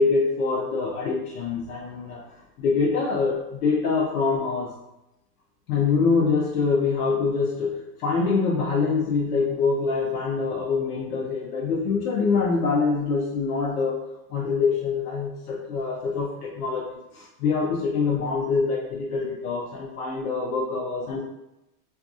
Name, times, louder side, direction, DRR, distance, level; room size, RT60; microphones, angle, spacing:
voice 1, 0.0-2.3 2.6-4.7 5.7-14.0 14.3-21.2, left 4 dB, 65° left, -4 dB, 0.6 m, -25 dB
2.5 x 2.3 x 2.5 m, 0.92 s
supercardioid pair, 175°, 48 cm